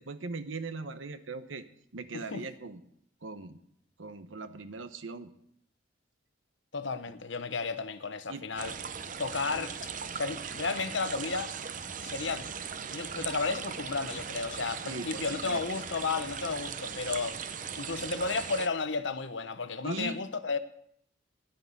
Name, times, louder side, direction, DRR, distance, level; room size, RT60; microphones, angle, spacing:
voice 1, 0.0-1.7 1.9-2.8 3.2-3.6 4.0-5.3 8.3-8.4 14.8-15.6 19.8-20.2, right 3 dB, 80° right, 1.0 m, -39 dB
voice 2, 6.7-8.7 9.2-11.5 12.0-12.5 12.9-17.4 17.7-20.6, left 4 dB, 70° left, 1.0 m, -33 dB
sound 1, 8.6-18.7, right 6 dB, 40° right, 0.6 m, -39 dB
10.5 x 8.8 x 8.3 m
head